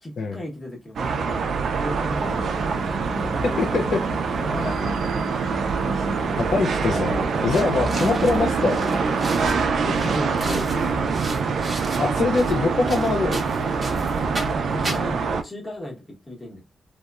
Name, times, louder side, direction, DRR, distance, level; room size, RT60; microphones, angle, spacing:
voice 1, 0.0-1.5 1.8-2.5 3.1-3.8 4.4-5.3 7.7-7.9 9.8-11.6 14.4-14.5 14.7-16.6, left 1 dB, 15° left, 0.9 m, -35 dB
sound 1, 1.0-15.4, right 5 dB, 60° right, 0.3 m, -25 dB
sound 2, 2.1-9.4, equal, 80° left, 1.0 m, -34 dB
voice 2, 3.6-4.0 6.0-6.1 6.3-8.9 12.0-13.4, left 4 dB, 55° left, 0.4 m, -23 dB
sound 3, 7.5-15.0, right 1 dB, 20° right, 0.7 m, -35 dB
3.0 x 2.1 x 2.3 m
wide cardioid pair, 155°, 0 cm